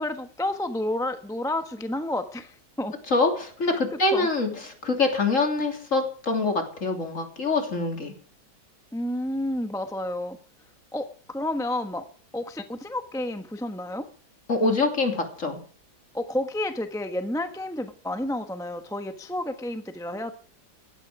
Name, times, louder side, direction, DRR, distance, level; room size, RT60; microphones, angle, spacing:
voice 1, 0.0-2.9 3.7-4.3 8.9-10.4 10.9-12.0 12.3-14.1 16.1-20.3, left 1 dB, ahead, 7 dB, 1.0 m, -30 dB
voice 2, 3.1-8.1 14.5-15.6, left 3 dB, 45° left, 4 dB, 3.3 m, -25 dB
16.5 x 12.5 x 4.9 m, 0.43 s
omnidirectional pair, 1.8 m